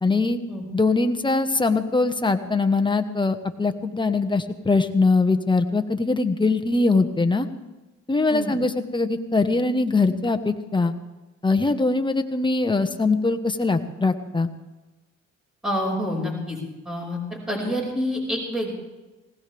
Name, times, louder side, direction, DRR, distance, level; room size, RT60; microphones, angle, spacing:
voice 1, 0.0-0.4 0.7-7.5 8.1-10.9 11.4-14.5, left 3 dB, 15° left, 7 dB, 1.3 m, -22 dB
voice 2, 15.6-16.6 16.9-18.7, equal, ahead, -2 dB, 5.6 m, -27 dB
19.5 x 18.0 x 3.5 m, 1.1 s
cardioid pair, 90°, 30 cm